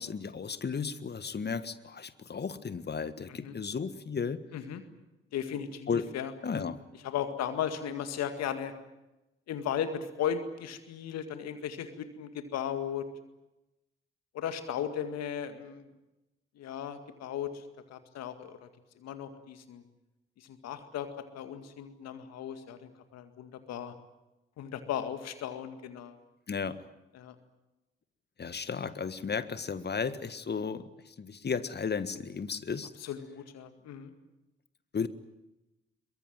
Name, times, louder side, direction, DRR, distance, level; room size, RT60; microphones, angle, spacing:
voice 1, 0.0-4.4 5.9-6.0 6.4-6.8 26.5-26.8 28.4-32.9 34.9-35.1, left 5 dB, 35° left, 13 dB, 1.7 m, -34 dB
voice 2, 5.3-6.7 7.0-8.7 9.5-13.0 14.3-15.9 16.6-18.7 19.0-19.8 20.4-21.1 21.3-23.9 24.6-26.2 27.1-27.4 33.0-34.1, left 9 dB, 60° left, 9 dB, 2.1 m, -36 dB
23.0 x 22.0 x 9.1 m, 0.97 s
figure-of-eight pair, 40°, 29 cm